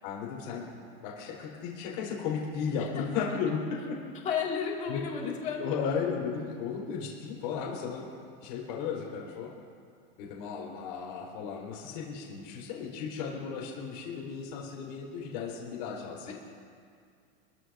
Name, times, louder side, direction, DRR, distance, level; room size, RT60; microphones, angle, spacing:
voice 1, 0.0-0.8 1.0-4.0 4.9-5.3 5.6-8.1 8.4-9.5 10.2-16.3, left 6 dB, 50° left, -4 dB, 4.5 m, -35 dB
voice 2, 4.2-5.8 16.3-16.4, left 7 dB, 25° left, -2 dB, 2.2 m, -33 dB
28.0 x 13.5 x 2.7 m, 2.3 s
supercardioid pair, 165°, 31 cm